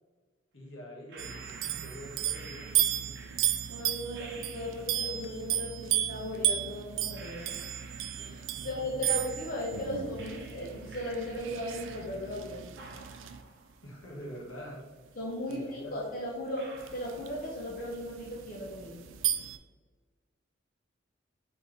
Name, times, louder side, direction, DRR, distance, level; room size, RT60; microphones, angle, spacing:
voice 1, 0.5-2.7 3.0-3.1 8.6-9.0 13.8-14.8 15.5-16.0, equal, 80° left, -2 dB, 1.3 m, -45 dB
sound 1, 1.1-5.2 6.3-6.4 7.1-9.8 10.2-12.4 12.7-14.8 15.1-15.2 15.9-16.0 16.5-17.9 18.1-18.7, right 3 dB, 55° right, 0.7 m, -52 dB
sound 2, 1.2-13.4 15.5-15.6 16.8-19.6, right 11 dB, 80° right, 0.4 m, -34 dB
voice 2, 3.7-7.7 8.2-12.6 15.2-19.0, left 1 dB, 45° left, -3 dB, 0.7 m, -37 dB
4.2 x 3.9 x 3.2 m, 1.4 s
head